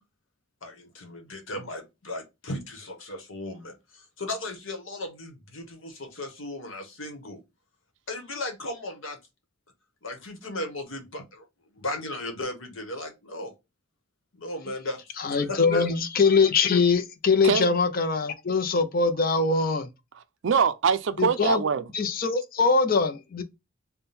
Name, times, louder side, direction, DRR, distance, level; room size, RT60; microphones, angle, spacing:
voice 1, 0.6-7.4 8.1-9.2 10.0-11.4 11.7-13.5 14.3-15.9, left 2 dB, 70° left, 1.1 m, -36 dB
voice 2, 15.2-19.9 21.2-21.6 21.9-23.4, left 4 dB, 45° left, 0.5 m, -23 dB
voice 3, 20.1-21.8, right 6 dB, 60° right, 0.4 m, -24 dB
3.5 x 2.2 x 4.1 m
head